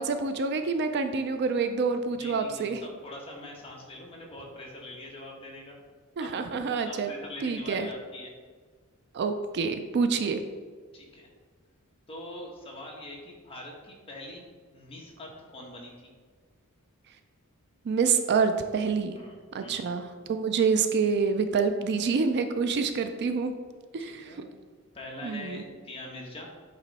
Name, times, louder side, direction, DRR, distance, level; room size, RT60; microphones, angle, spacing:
voice 1, 0.0-2.8 6.2-7.1 7.4-7.9 9.1-10.4 17.9-19.2 19.5-23.5 23.9-24.4 25.2-25.6, right 5 dB, 50° right, 8 dB, 0.4 m, -27 dB
voice 2, 2.1-5.8 6.2-6.4 6.7-8.3 10.9-11.3 12.1-14.4 14.7-15.9 19.2-19.8 24.0-24.5 24.9-26.5, left 1 dB, 25° left, -2 dB, 1.2 m, -43 dB
8.2 x 3.1 x 4.1 m, 1.5 s
head